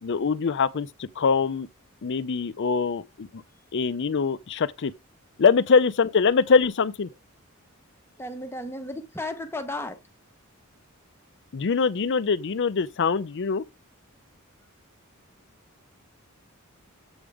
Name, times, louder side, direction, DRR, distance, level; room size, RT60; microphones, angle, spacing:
voice 1, 0.0-1.7 2.0-3.4 3.7-4.9 5.4-7.1 11.5-13.6, left 5 dB, 55° left, 0.5 m, -23 dB
voice 2, 8.2-10.0, left 1 dB, 10° left, 1.0 m, -34 dB
8.0 x 3.6 x 4.8 m
head